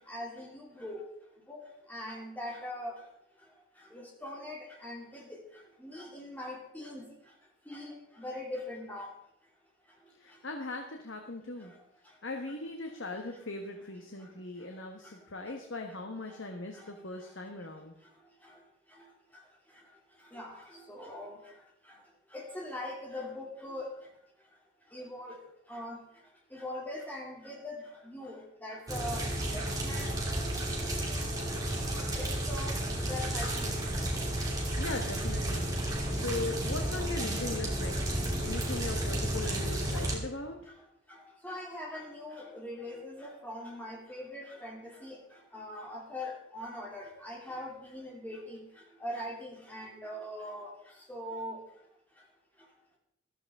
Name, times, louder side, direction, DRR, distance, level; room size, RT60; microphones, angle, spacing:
voice 1, 0.1-1.0 1.5-1.6 1.9-2.9 3.9-5.4 5.8-7.0 7.7-9.1 20.3-20.6 20.9-21.4 22.3-23.9 24.9-25.4 25.7-26.0 26.5-27.8 28.0-29.2 29.5-30.1 31.9-32.7 33.1-33.7 41.4-45.2 45.5-48.6 49.0-50.7 51.1-51.6, left 1 dB, 10° left, -2 dB, 2.8 m, -41 dB
voice 2, 10.1-11.7 12.2-17.9 34.8-40.7, left 2 dB, 65° left, 3 dB, 1.3 m, -39 dB
sound 1, 28.9-40.2, right 1 dB, 15° right, 2.6 m, -32 dB
14.5 x 13.0 x 3.6 m, 0.78 s
head